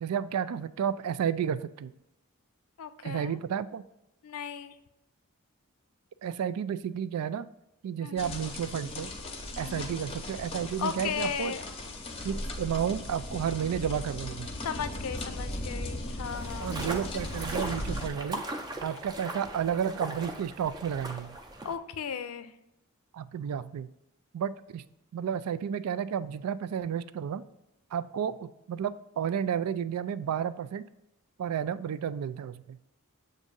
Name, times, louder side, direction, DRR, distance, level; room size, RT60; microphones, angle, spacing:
voice 1, 0.0-1.9 3.0-3.8 6.2-7.5 7.8-9.1 9.6-11.5 12.2-14.5 16.6-18.4 18.8-21.4 23.1-23.9 24.3-24.8 25.1-27.4 27.9-30.8 31.4-32.8, right 8 dB, 90° right, 14 dB, 0.3 m, -32 dB
voice 2, 2.8-3.4 4.2-4.8 8.0-8.4 9.6-10.0 10.8-11.7 14.6-16.8 21.6-22.5, left 7 dB, 80° left, 11 dB, 0.5 m, -36 dB
sound 1, 8.2-18.1, left 1 dB, 25° left, 0.6 m, -38 dB
sound 2, 16.3-21.7, right 2 dB, 20° right, 0.5 m, -39 dB
7.3 x 2.6 x 5.3 m, 0.90 s
head